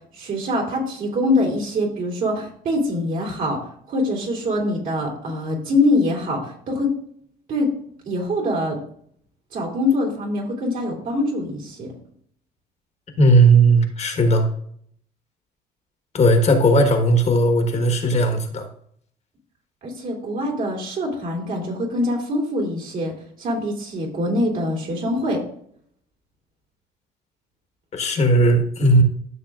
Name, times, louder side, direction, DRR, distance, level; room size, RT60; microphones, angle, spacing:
voice 1, 0.1-3.6 3.9-6.9 7.5-7.7 8.1-8.8 9.5-11.9 19.8-23.1 23.4-25.4, left 1 dB, 55° right, -1 dB, 3.0 m, -24 dB
voice 2, 13.2-14.5 16.1-18.7 27.9-29.0, right 1 dB, 40° left, 4 dB, 1.4 m, -16 dB
12.5 x 6.6 x 2.4 m, 0.65 s
cardioid pair, 110°, 17 cm